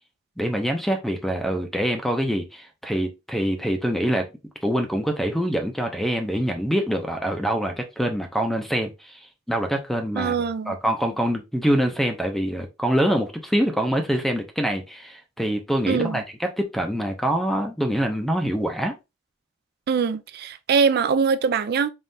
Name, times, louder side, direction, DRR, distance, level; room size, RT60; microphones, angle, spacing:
voice 1, 0.4-4.3 4.6-9.2 9.5-18.9, equal, ahead, 0.5 m, -25 dB
voice 2, 10.1-10.7 15.9-16.2 19.9-21.9, right 5 dB, 55° right, 0.4 m, -22 dB
3.6 x 3.1 x 2.6 m
head